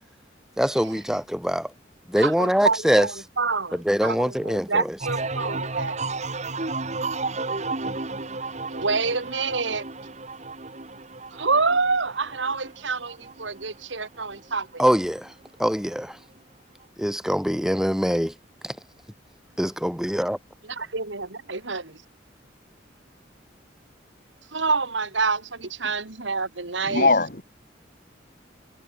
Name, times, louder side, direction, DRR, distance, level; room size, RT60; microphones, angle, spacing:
voice 1, 0.6-1.7 2.1-3.1 3.7-4.9 14.8-15.3 15.6-16.2 17.0-18.3 18.6-18.8 19.6-20.4, equal, 5° right, 2.9 m, -23 dB
voice 2, 2.2-5.9 8.7-9.8 11.3-14.8 20.7-22.0 24.5-27.1, right 4 dB, 80° right, 2.6 m, -27 dB
sound 1, 5.0-14.6 14.9-15.5, right 3 dB, 40° right, 2.0 m, -33 dB
voice 3, 26.9-27.4, left 3 dB, 50° left, 2.8 m, -20 dB
head